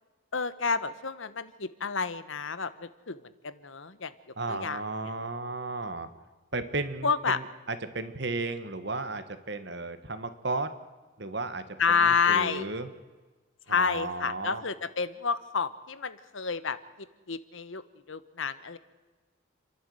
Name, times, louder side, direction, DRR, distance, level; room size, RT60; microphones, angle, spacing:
voice 1, 0.3-4.1 4.5-4.8 7.0-7.4 11.8-12.7 13.7-16.8 17.3-17.8 18.1-18.8, left 5 dB, 75° left, 14 dB, 1.1 m, -29 dB
voice 2, 4.4-6.1 6.5-10.7 11.2-12.9 13.7-14.6, right 3 dB, 55° right, 10 dB, 1.6 m, -34 dB
29.0 x 11.5 x 8.0 m, 1.3 s
head